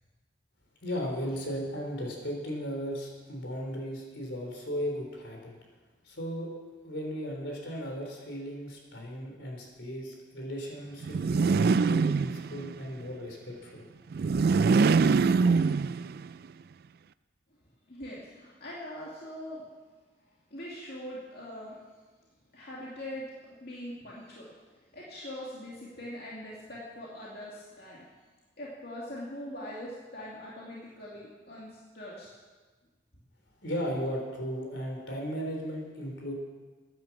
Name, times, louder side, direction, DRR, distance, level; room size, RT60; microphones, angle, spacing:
voice 1, 0.8-5.5 6.0-6.5 6.8-13.8 33.6-36.3, equal, 75° left, 1 dB, 3.7 m, -36 dB
sound 1, 11.0-12.8 14.1-16.3, right 4 dB, 50° right, 0.3 m, -24 dB
voice 2, 17.9-19.6 20.5-21.8 22.5-23.3 23.6-24.5 24.9-28.0 28.6-32.3, left 1 dB, 55° left, -6 dB, 2.5 m, -42 dB
15.0 x 10.5 x 7.2 m, 1.4 s
head